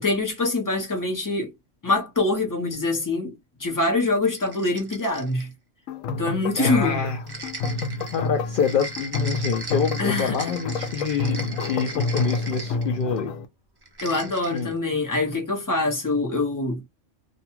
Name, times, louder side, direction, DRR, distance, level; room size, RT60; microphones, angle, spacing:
voice 1, 0.0-1.5 1.8-5.5 6.2-7.0 10.0-10.5 14.0-16.9, left 2 dB, 20° left, 0.8 m, -24 dB
sound 1, 4.2-5.5 7.3-13.2 13.8-14.7, right 2 dB, 25° right, 0.6 m, -38 dB
sound 2, 5.9-13.5, left 3 dB, 80° left, 1.0 m, -29 dB
voice 2, 6.6-7.2 8.1-13.3 14.5-14.7, left 6 dB, 60° left, 0.5 m, -26 dB
2.6 x 2.3 x 2.8 m
omnidirectional pair, 1.4 m